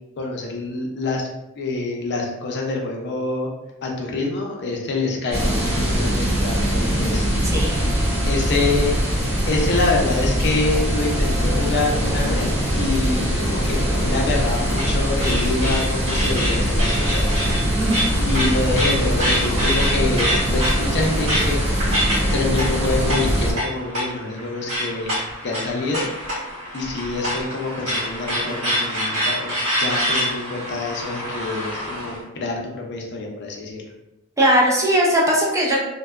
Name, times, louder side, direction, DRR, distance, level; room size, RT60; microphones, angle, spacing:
voice 1, 0.2-1.3 1.6-3.5 3.8-8.9 9.5-17.4 18.2-21.6 22.3-25.1 25.4-26.1 26.7-33.8, left 3 dB, 50° left, 0 dB, 0.5 m, -26 dB
sound 1, 5.3-23.5, equal, 30° right, 0.9 m, -22 dB
voice 2, 7.5-7.8 17.8-18.0 34.4-35.8, right 1 dB, 15° right, -4 dB, 0.4 m, -19 dB
sound 2, 14.0-32.2, equal, 75° right, 1.2 m, -27 dB
2.5 x 2.1 x 2.3 m, 0.95 s
head